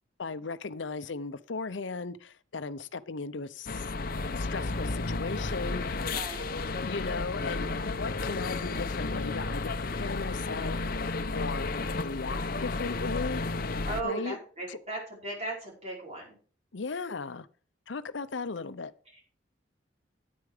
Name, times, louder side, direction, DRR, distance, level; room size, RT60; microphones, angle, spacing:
voice 1, 0.2-3.8 4.4-6.2 6.7-13.6 14.0-14.4 14.7-14.8 16.7-17.5 17.9-18.9, left 4 dB, 90° left, 14 dB, 0.7 m, -37 dB
sound 1, 3.7-14.0, left 3 dB, 50° left, 0.8 m, -32 dB
voice 2, 6.1-6.5 13.9-16.4 19.1-19.2, right 2 dB, 35° right, -3 dB, 5.2 m, -37 dB
9.7 x 9.6 x 5.0 m, 0.40 s
head